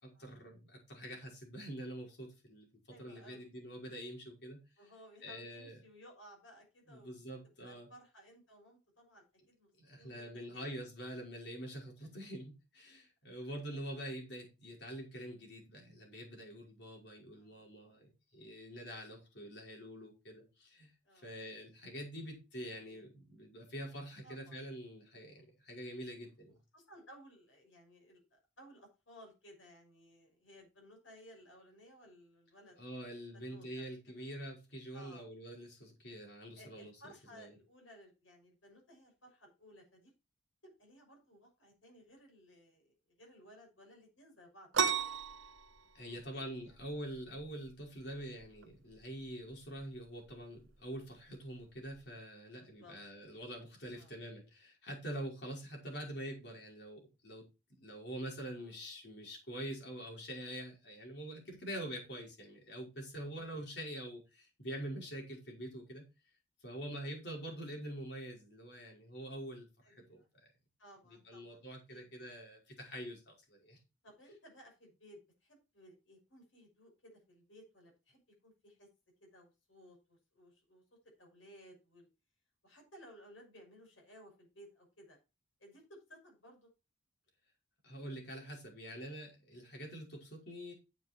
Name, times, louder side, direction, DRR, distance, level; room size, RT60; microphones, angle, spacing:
voice 1, 0.0-2.7 3.0-4.9 5.2-5.8 6.9-7.9 9.8-20.9 21.2-26.6 32.8-37.6 45.9-57.5 57.7-66.0 66.6-70.2 71.1-73.8 87.8-90.7, right 1 dB, 55° left, 0 dB, 5.3 m, -45 dB
voice 2, 2.9-3.5 4.8-7.2 7.6-9.7 10.0-10.7 17.4-17.6 21.0-21.3 22.6-23.0 24.2-24.6 26.7-32.8 33.3-34.2 34.9-35.3 36.5-40.1 40.6-45.2 46.0-46.5 52.6-53.0 53.9-54.1 58.6-58.7 69.8-70.3 70.8-71.6 71.9-72.1 74.0-78.9 79.2-80.8 81.2-82.1 82.6-85.2 85.6-86.7, equal, 75° left, 1 dB, 6.1 m, -59 dB
sound 1, 44.7-52.1, right 7 dB, 75° right, 0.9 m, -39 dB
10.0 x 7.3 x 4.5 m, 0.28 s
head